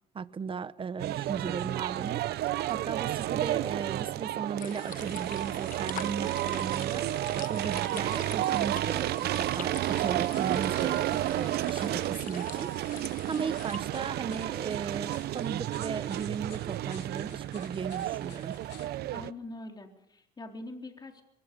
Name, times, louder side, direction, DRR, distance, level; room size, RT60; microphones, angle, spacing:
voice 1, 0.1-7.1 7.3-18.6, right 6 dB, 30° right, 1.0 m, -37 dB
sound 1, 1.0-19.3, right 14 dB, 70° right, 0.8 m, -31 dB
sound 2, 4.6-13.8, left 10 dB, 55° left, 0.9 m, -46 dB
sound 3, 9.8-18.9, left 11 dB, 85° left, 3.8 m, -55 dB
voice 2, 19.1-21.2, left 2 dB, 25° left, 3.8 m, -43 dB
24.0 x 22.0 x 5.3 m
cardioid pair, 110°, 17 cm